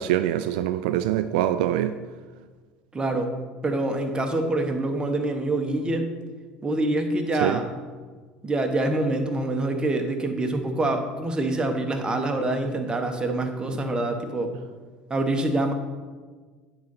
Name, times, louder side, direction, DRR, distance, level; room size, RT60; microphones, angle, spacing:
voice 1, 0.0-1.9 7.4-7.6, right 12 dB, 75° right, 0.3 m, -24 dB
voice 2, 2.9-3.4 3.6-6.1 6.6-7.7 8.4-14.5 15.1-15.7, right 2 dB, 20° right, 1.2 m, -25 dB
9.4 x 3.9 x 5.7 m
hypercardioid pair, 80°, 5 cm